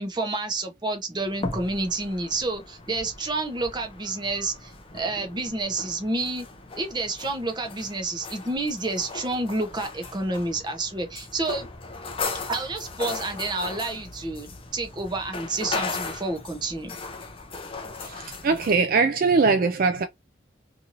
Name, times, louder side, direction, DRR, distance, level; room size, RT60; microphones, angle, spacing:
voice 1, 0.0-6.5 6.8-11.7 12.5-17.0, right 2 dB, 25° right, 0.8 m, -29 dB
sound 1, 1.2-18.8, left 3 dB, 30° left, 0.5 m, -37 dB
voice 2, 18.0-20.0, right 4 dB, 50° right, 0.4 m, -21 dB
2.9 x 2.6 x 2.6 m
head